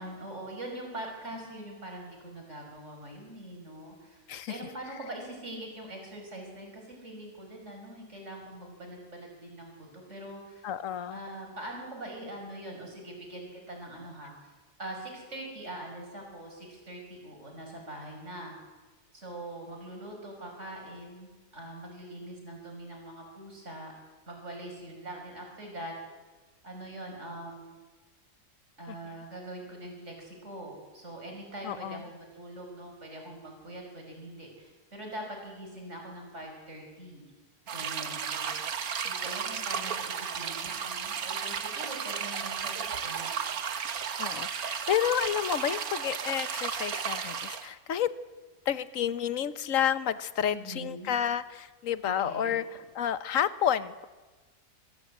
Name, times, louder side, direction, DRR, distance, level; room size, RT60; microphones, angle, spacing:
voice 1, 0.0-4.2 4.5-10.6 11.1-14.5 14.8-18.6 19.1-23.9 24.3-25.9 26.6-27.8 28.8-37.3 37.7-43.6 50.5-51.2 52.2-52.6, right 1 dB, 45° right, 1 dB, 6.1 m, -43 dB
voice 2, 10.6-11.2 28.9-29.0 31.6-32.0 44.2-48.1 48.7-52.6 52.9-54.1, left 9 dB, 60° left, 14 dB, 1.2 m, -30 dB
sound 1, 37.7-47.7, right 7 dB, 65° right, 1.6 m, -34 dB
24.0 x 15.5 x 8.4 m, 1.3 s
omnidirectional pair, 1.7 m